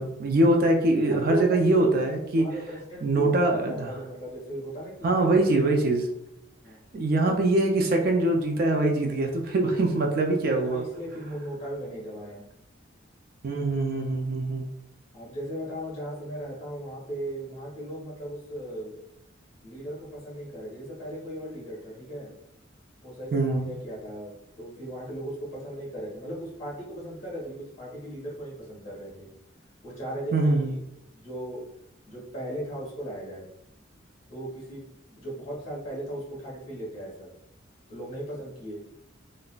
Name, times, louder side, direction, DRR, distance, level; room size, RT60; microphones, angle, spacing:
voice 1, 0.0-2.5 3.0-3.9 5.0-6.1 6.9-10.8 13.4-14.6 23.3-23.7 30.3-30.7, right 2 dB, 45° right, 2 dB, 0.4 m, -23 dB
voice 2, 1.1-5.4 6.6-7.0 10.4-12.4 15.1-19.0 19.6-22.3 23.0-29.3 29.8-30.8 31.1-31.6 32.0-33.5 34.3-34.8 35.1-37.3 37.9-38.8, right 1 dB, 35° left, -5 dB, 1.5 m, -37 dB
3.8 x 2.1 x 2.2 m, 0.81 s
head